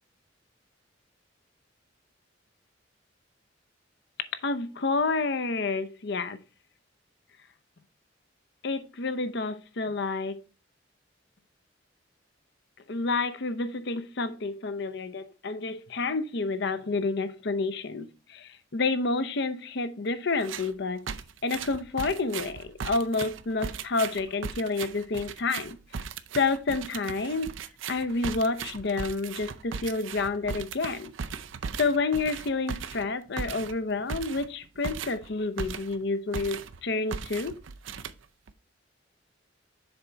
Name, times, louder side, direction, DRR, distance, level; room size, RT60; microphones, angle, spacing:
voice 1, 4.4-6.4 8.6-10.4 12.9-21.0 21.4-25.8 26.4-27.6 27.9-31.1 31.8-37.6 37.9-38.0, left 3 dB, 60° left, 0.7 m, -29 dB
sound 1, 20.4-20.7 21.1-36.0 36.3-36.8 37.1-38.5, right 6 dB, 80° right, 0.5 m, -38 dB
7.0 x 4.6 x 4.0 m
head